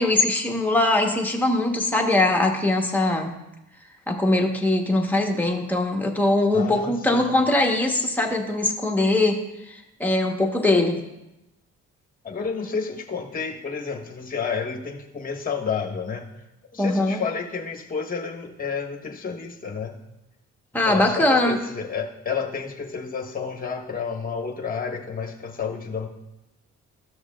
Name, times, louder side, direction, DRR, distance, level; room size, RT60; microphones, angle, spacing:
voice 1, 0.0-3.3 4.1-9.4 9.7-11.0 16.8-17.2 20.7-21.6, left 2 dB, 5° left, 1 dB, 1.3 m, -21 dB
voice 2, 6.5-7.4 12.2-16.3 16.7-20.0 20.8-26.1, left 5 dB, 30° left, 1 dB, 1.2 m, -30 dB
13.5 x 6.3 x 2.5 m, 0.91 s
cardioid pair, 90°, 30 cm